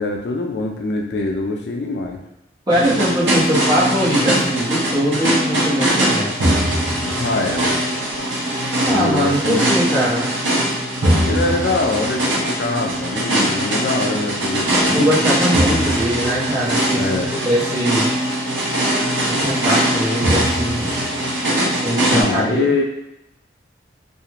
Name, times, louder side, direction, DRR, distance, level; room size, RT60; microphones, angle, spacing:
voice 1, 0.0-2.2 7.0-7.7 8.9-9.7 11.2-15.1 16.9-17.3 22.1-22.8, left 3 dB, 55° left, 1 dB, 0.3 m, -23 dB
voice 2, 2.7-6.5 8.8-10.3 14.9-18.1 19.3-20.9 21.8-22.7, equal, 20° right, -10 dB, 0.9 m, -21 dB
sound 1, 2.7-22.2, right 1 dB, 75° right, 0.7 m, -20 dB
2.4 x 2.3 x 2.8 m, 0.86 s
head